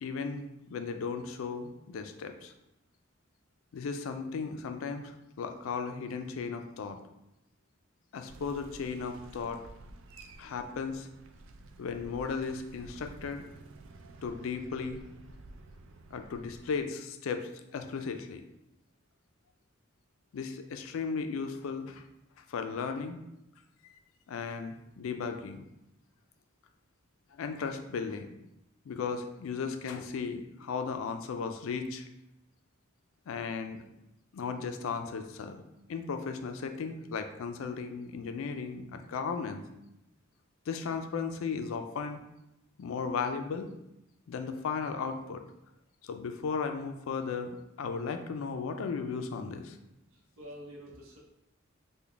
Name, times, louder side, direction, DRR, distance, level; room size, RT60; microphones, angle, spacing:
voice 1, 0.0-2.5 3.7-7.0 8.1-9.6 10.4-11.1 11.8-13.4 14.2-15.0 16.1-18.5 20.3-22.0 22.5-23.2 23.9-24.0 24.3-25.6 27.3-28.3 28.9-32.0 33.3-33.8 34.3-35.6 35.9-39.7 40.7-42.2 42.8-43.7 44.3-45.4 46.0-49.8, left 5 dB, 80° left, 7 dB, 0.4 m, -36 dB
sound 1, 8.3-16.8, right 2 dB, 70° right, 0.3 m, -51 dB
voice 2, 50.1-51.2, equal, 85° right, -2 dB, 0.8 m, -47 dB
3.8 x 2.2 x 3.3 m, 0.86 s
head